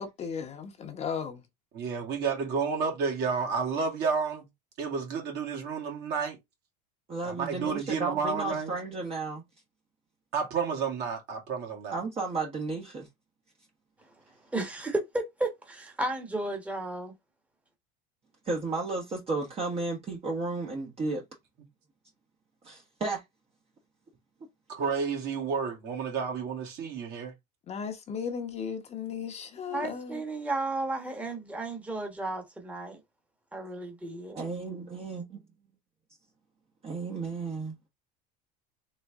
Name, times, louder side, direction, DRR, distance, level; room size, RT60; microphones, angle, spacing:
voice 1, 0.0-1.4 27.7-30.2, left 6 dB, 30° left, 1.0 m, -36 dB
voice 2, 1.7-4.5 4.8-6.4 7.2-8.7 10.3-12.0 24.7-27.3, right 5 dB, 50° right, 2.1 m, -31 dB
voice 3, 7.1-9.4 11.9-13.1 18.4-21.2 22.6-23.2 34.3-35.5 36.8-37.9, right 3 dB, 30° right, 1.1 m, -33 dB
voice 4, 14.5-17.1 29.7-33.0 33.5-34.4, right 2 dB, 5° right, 1.2 m, -33 dB
4.1 x 3.1 x 3.5 m
supercardioid pair, 130°, 21 cm